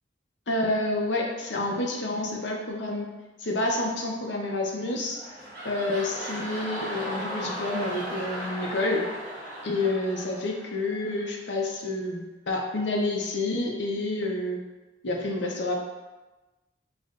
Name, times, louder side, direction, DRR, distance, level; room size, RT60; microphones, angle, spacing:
voice 1, 0.5-3.1 3.4-5.2 5.6-9.1 9.6-14.6 15.0-15.7, left 2 dB, 75° left, 0 dB, 0.7 m, -29 dB
sound 1, 4.8-11.3 11.9-12.0, right 1 dB, 50° right, 1.2 m, -37 dB
6.4 x 2.5 x 2.5 m, 1.1 s
head